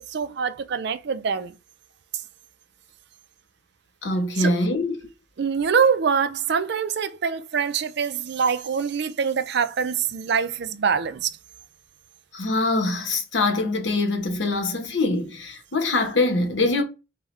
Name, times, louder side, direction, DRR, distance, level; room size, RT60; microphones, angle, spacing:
voice 1, 0.0-1.5 4.4-4.5 5.4-11.4, right 6 dB, 65° right, 0.4 m, -24 dB
voice 2, 4.0-4.9 12.3-16.8, left 2 dB, 70° left, 1.0 m, -23 dB
5.5 x 2.3 x 3.1 m
head